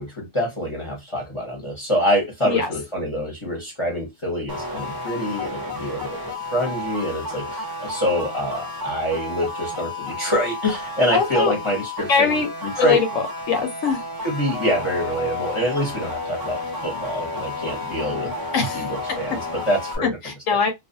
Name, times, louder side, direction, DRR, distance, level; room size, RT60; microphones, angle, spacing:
voice 1, 0.0-13.0 14.2-18.3 18.7-20.2, equal, 30° left, 0.7 m, -26 dB
sound 1, 4.5-20.0, left 2 dB, 30° right, 0.4 m, -31 dB
voice 2, 11.1-11.5 12.1-12.5 12.8-14.0 18.5-18.8 20.0-20.7, left 5 dB, 75° left, 1.0 m, -22 dB
2.4 x 2.1 x 2.5 m
omnidirectional pair, 1.4 m